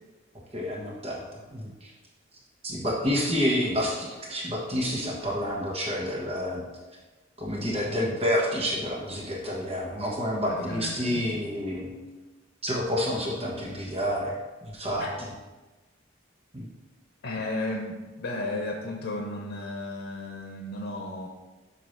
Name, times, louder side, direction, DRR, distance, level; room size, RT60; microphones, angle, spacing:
voice 1, 0.5-1.2 1.5-1.7 2.6-6.6 7.4-11.9 12.6-14.4 14.6-15.0 16.5-16.7, equal, 30° right, -3 dB, 1.2 m, -29 dB
voice 2, 10.4-11.3 15.0-15.1 17.2-21.3, left 2 dB, 90° left, 0 dB, 0.9 m, -34 dB
7.8 x 2.9 x 5.6 m, 1.2 s
head